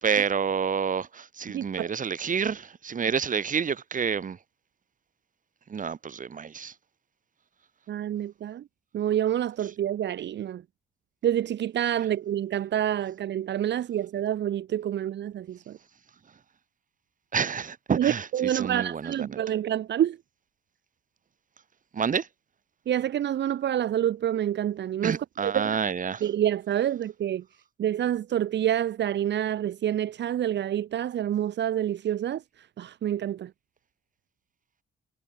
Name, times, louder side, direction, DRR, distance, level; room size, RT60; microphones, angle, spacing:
voice 1, 0.0-4.4 5.7-6.7 17.3-19.4 21.9-22.3 25.0-26.2, right 6 dB, 40° right, 2.3 m, -28 dB
voice 2, 1.5-1.9 7.9-8.6 8.9-10.6 11.2-15.8 18.0-20.2 22.9-25.2 25.4-25.8 26.2-27.4 27.8-33.5, right 11 dB, 60° right, 1.2 m, -27 dB
cardioid pair, 90°, 20 cm